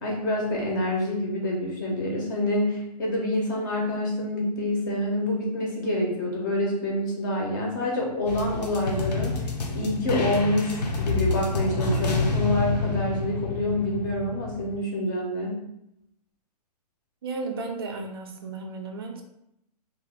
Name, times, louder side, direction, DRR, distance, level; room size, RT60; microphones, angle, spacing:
voice 1, 0.0-9.4 9.7-15.6, left 1 dB, 30° left, -2 dB, 0.7 m, -27 dB
sound 1, 8.3-14.8, left 3 dB, 80° left, 0.7 m, -28 dB
voice 2, 17.2-19.2, right 3 dB, 35° right, 3 dB, 0.4 m, -34 dB
2.4 x 2.3 x 3.4 m, 0.80 s
hypercardioid pair, 170°, 21 cm